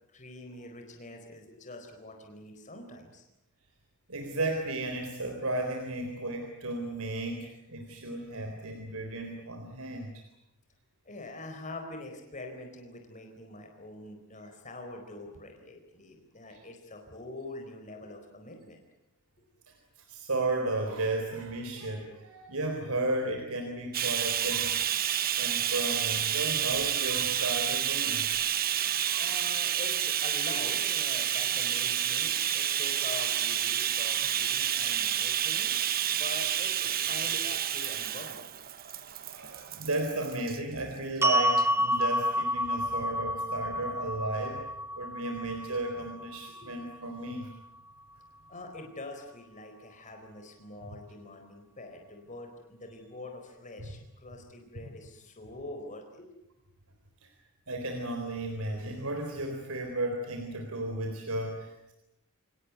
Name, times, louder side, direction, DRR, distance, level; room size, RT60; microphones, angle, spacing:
voice 1, 0.1-3.2 10.0-10.1 11.0-18.8 29.1-35.7 36.1-38.5 46.6-46.7 48.5-56.3, left 2 dB, 35° left, 4 dB, 4.4 m, -44 dB
voice 2, 4.1-10.2 16.5-16.6 19.7-19.8 20.1-25.0 25.4-28.3 29.1-29.4 39.3-44.6 44.9-47.5 57.7-61.9, right 2 dB, 85° right, 3 dB, 4.0 m, -34 dB
Bathtub (filling or washing), 23.9-40.6 41.5-41.6 42.0-42.1, right 10 dB, 45° right, 1.0 m, -29 dB
sound 1, 41.2-47.4, equal, 10° right, 1.0 m, -30 dB
27.5 x 18.5 x 9.5 m, 0.89 s
head